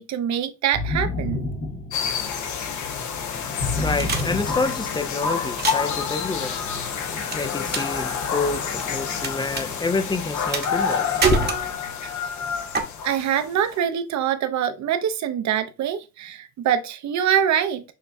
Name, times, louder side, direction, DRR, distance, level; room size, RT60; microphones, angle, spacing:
voice 1, 0.0-1.5 13.0-17.8, right 9 dB, 65° right, 0.7 m, -24 dB
sound 1, 0.7-2.5 3.6-5.3, left 2 dB, 40° left, 1.2 m, -29 dB
sound 2, 1.9-13.8, left 6 dB, 75° left, 0.9 m, -28 dB
voice 2, 3.3-11.5, left 3 dB, 15° left, 0.4 m, -28 dB
sound 3, 4.0-4.9 5.5-6.0 7.3-9.3 9.6-9.7 10.5-10.9 11.2-12.0 12.7-12.8, right 4 dB, 35° right, 1.0 m, -25 dB
6.4 x 2.2 x 2.6 m
cardioid pair, 90°, 30 cm